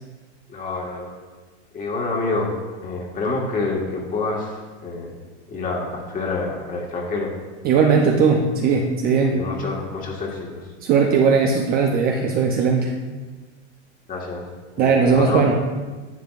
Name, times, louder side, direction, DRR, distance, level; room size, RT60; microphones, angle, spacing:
voice 1, 0.5-1.1 1.7-2.5 2.8-5.1 5.5-7.3 7.7-7.8 9.3-10.6 14.1-14.4 14.8-15.5, left 3 dB, 25° left, -1 dB, 1.6 m, -27 dB
voice 2, 7.6-9.4 10.8-12.9 14.8-15.5, right 5 dB, 25° right, 1 dB, 0.6 m, -18 dB
10.5 x 7.5 x 2.5 m, 1.3 s
supercardioid pair, 135°, 35 cm